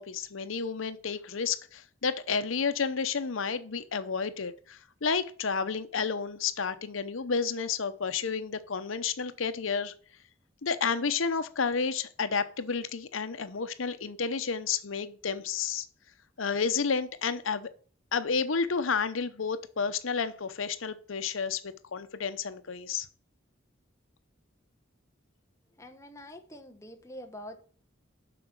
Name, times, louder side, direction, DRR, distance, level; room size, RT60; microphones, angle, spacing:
voice 1, 0.0-9.9 10.6-15.9 16.4-17.7 18.1-23.1, left 5 dB, 85° left, 11 dB, 0.8 m, -31 dB
voice 2, 25.7-27.6, left 1 dB, 15° left, 4 dB, 1.0 m, -45 dB
7.8 x 5.9 x 6.0 m, 0.43 s
head